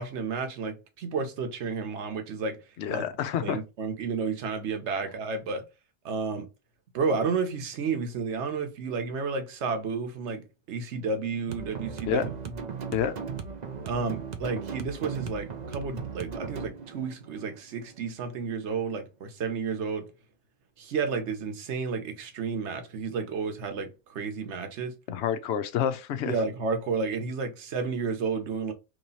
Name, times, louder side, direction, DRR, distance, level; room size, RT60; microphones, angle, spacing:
voice 1, 0.0-2.6 2.9-3.0 3.4-5.6 6.0-6.5 6.9-12.3 13.8-20.1 20.8-24.9 26.2-28.7, right 5 dB, 55° right, 1.1 m, -31 dB
voice 2, 2.8-3.6 12.1-12.3 12.9-13.1 25.1-26.4, left 9 dB, 65° left, 0.7 m, -28 dB
sound 1, 11.5-18.5, right 5 dB, 90° right, 0.3 m, -37 dB
3.1 x 3.1 x 4.0 m
omnidirectional pair, 1.6 m